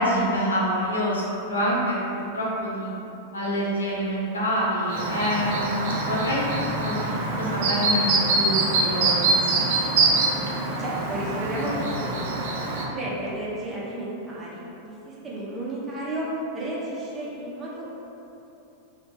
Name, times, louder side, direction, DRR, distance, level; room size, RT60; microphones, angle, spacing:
voice 1, 0.0-2.9 3.3-6.4 6.8-7.1 7.4-9.2 9.5-9.7 10.0-10.1, equal, 75° left, -6 dB, 0.8 m, -26 dB
Chirp tweet, 4.9-12.9, right 3 dB, 55° right, 0.5 m, -24 dB
voice 2, 10.8-11.7 12.0-12.5 12.9-16.3 16.5-17.9, right 1 dB, 20° right, -7 dB, 0.9 m, -33 dB
4.1 x 2.5 x 3.4 m, 2.9 s
figure-of-eight pair, 90°, 0 cm